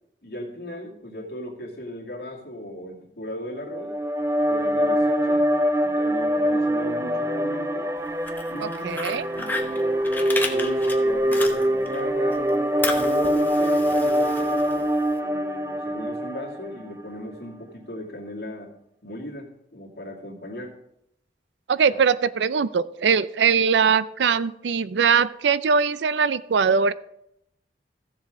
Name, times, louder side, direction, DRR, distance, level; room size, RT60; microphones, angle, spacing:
voice 1, 0.2-3.9 4.5-5.4 5.8-7.9 8.5-9.0 9.4-9.8 10.5-12.4 12.9-14.9 15.2-18.7 19.0-20.7 21.8-22.0, left 1 dB, 65° left, -1 dB, 2.4 m, -37 dB
sound 1, 3.6-17.0, equal, 15° right, 0.5 m, -24 dB
Fire, 8.1-12.0 12.3-15.1, left 3 dB, 10° left, 0.9 m, -33 dB
voice 2, 8.6-9.3 21.7-26.9, right 6 dB, 75° right, 16 dB, 0.4 m, -21 dB
15.5 x 7.4 x 3.7 m, 0.78 s
head